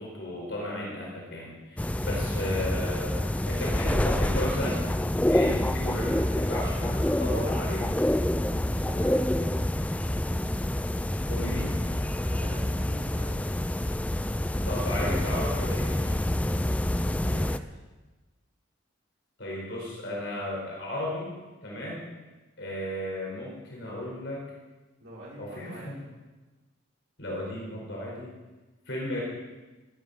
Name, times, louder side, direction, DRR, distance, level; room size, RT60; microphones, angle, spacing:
voice 1, 0.0-4.8 5.3-7.9 11.3-11.7 14.6-16.2 19.4-21.3 21.6-22.1 22.6-24.4 25.4-26.0 27.2-28.3 28.9-29.2, left 1 dB, 60° left, -3 dB, 4.6 m, -34 dB
sound 1, 1.8-17.6, left 1 dB, 5° left, 0.4 m, -27 dB
voice 2, 8.6-9.6 11.6-13.5 16.9-17.8 25.0-25.9, right 1 dB, 75° right, -8 dB, 5.6 m, -46 dB
14.5 x 11.5 x 6.8 m, 1.2 s
head